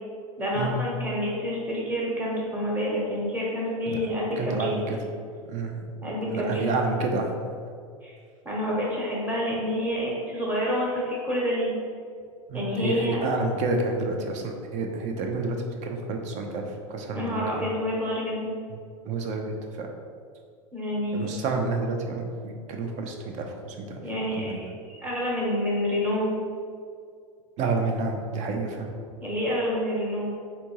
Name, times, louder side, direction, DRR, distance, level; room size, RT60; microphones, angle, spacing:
voice 1, 0.4-4.8 6.0-6.7 8.0-8.1 8.4-11.7 12.5-13.2 17.1-18.5 20.7-21.5 24.0-26.3 29.2-30.3, equal, 10° right, -6 dB, 1.1 m, -28 dB
voice 2, 4.4-5.0 5.5-5.8 6.3-7.6 12.5-17.7 18.7-18.8 19.1-19.9 21.1-24.0 24.4-24.6 27.6-28.9, right 3 dB, 45° right, 3 dB, 0.5 m, -29 dB
3.3 x 2.8 x 3.0 m, 2.2 s
hypercardioid pair, 95°, 18 cm